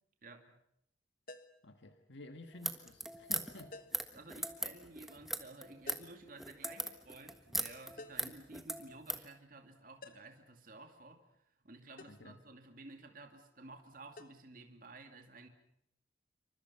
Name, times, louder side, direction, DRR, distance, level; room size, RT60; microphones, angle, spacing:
voice 1, 0.2-0.6 3.9-15.5, right 2 dB, 45° right, 4 dB, 2.6 m, -54 dB
sound 1, 1.3-1.7 3.7-4.1 5.9-6.2 8.0-8.4 10.0-10.4 12.0-12.3 14.2-14.3, left 2 dB, 50° left, 1.3 m, -52 dB
voice 2, 1.6-3.8 8.2-8.3 12.1-12.4, left 2 dB, 75° left, 6 dB, 1.6 m, -51 dB
sound 2, 2.5-9.3, right 1 dB, ahead, 1.4 m, -39 dB
28.0 x 25.0 x 5.7 m, 0.76 s
head